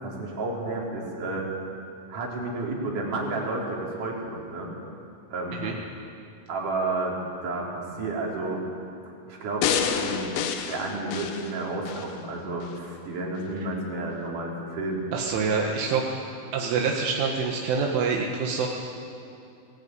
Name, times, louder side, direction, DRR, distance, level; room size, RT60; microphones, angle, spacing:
voice 1, 0.0-1.5 2.1-4.7 5.3-5.6 6.5-7.2 7.4-8.6 9.3-10.3 10.7-15.0, right 2 dB, 45° right, -3 dB, 5.0 m, -31 dB
sound 1, 9.6-12.1 12.6-12.7, left 7 dB, 85° left, 3.9 m, -28 dB
voice 2, 15.1-16.1 16.5-18.7, right 5 dB, 75° right, 0 dB, 3.9 m, -26 dB
20.5 x 20.0 x 9.5 m, 2.6 s
omnidirectional pair, 5.7 m